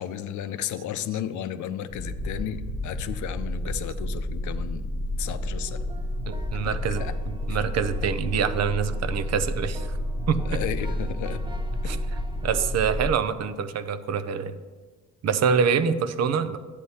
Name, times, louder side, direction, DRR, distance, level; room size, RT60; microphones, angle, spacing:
voice 1, 0.0-4.9 5.2-5.8 6.5-7.1 10.5-11.4 11.8-12.0, left 10 dB, 75° left, 11 dB, 0.6 m, -33 dB
sound 1, 1.9-13.1, left 1 dB, 40° left, 1.1 m, -30 dB
sound 2, 5.2-12.7, right 2 dB, 15° right, 0.6 m, -44 dB
voice 2, 6.3-9.9 10.3-10.6 11.8-14.6 15.2-16.6, right 6 dB, 60° right, 11 dB, 0.6 m, -26 dB
11.0 x 8.2 x 2.8 m, 1.4 s
cardioid pair, 90°, 30 cm